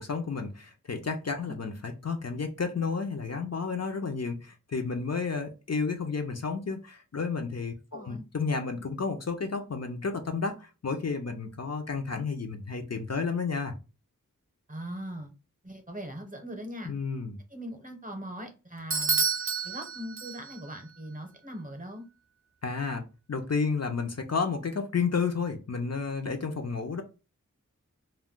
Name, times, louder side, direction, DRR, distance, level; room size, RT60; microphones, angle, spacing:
voice 1, 0.0-13.7 16.8-17.4 22.6-23.0 23.3-27.0, left 5 dB, 50° left, 0.5 m, -31 dB
voice 2, 7.9-8.2 14.7-15.3 15.6-16.9 17.5-19.2 19.6-22.0, equal, 25° right, 0.8 m, -40 dB
Bell / Doorbell, 18.9-20.8, right 5 dB, 40° right, 0.4 m, -29 dB
2.2 x 2.1 x 3.6 m
wide cardioid pair, 45°, 33 cm